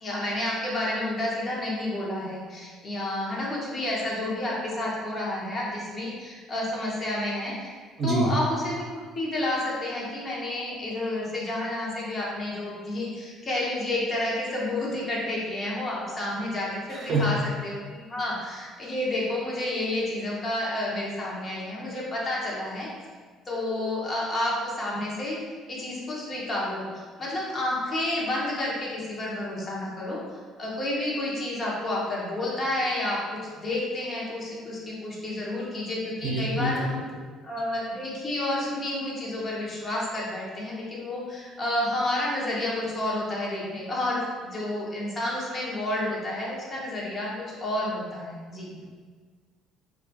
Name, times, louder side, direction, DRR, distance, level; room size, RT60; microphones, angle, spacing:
voice 1, 0.0-7.8 8.0-22.9 23.5-25.4 25.7-30.2 30.6-37.0 37.4-47.3 47.6-48.8, left 1 dB, 40° left, -4 dB, 0.7 m, -30 dB
voice 2, 16.9-17.2 36.2-36.7, right 2 dB, 45° right, -3 dB, 0.6 m, -25 dB
2.2 x 2.1 x 2.6 m, 1.5 s
hypercardioid pair, 60°, 0 cm